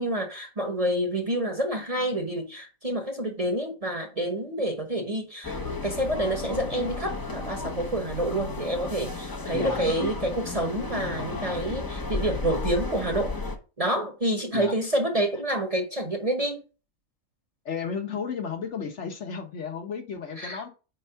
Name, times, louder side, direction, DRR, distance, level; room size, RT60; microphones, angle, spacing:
voice 1, 0.0-13.3 13.8-16.6 20.4-20.6, right 1 dB, 30° right, 0.9 m, -28 dB
sound 1, 5.4-13.6, left 3 dB, 20° left, 0.5 m, -33 dB
voice 2, 9.5-9.8 14.5-14.7 17.6-20.7, left 6 dB, 55° left, 1.2 m, -33 dB
4.6 x 4.3 x 5.5 m
omnidirectional pair, 1.5 m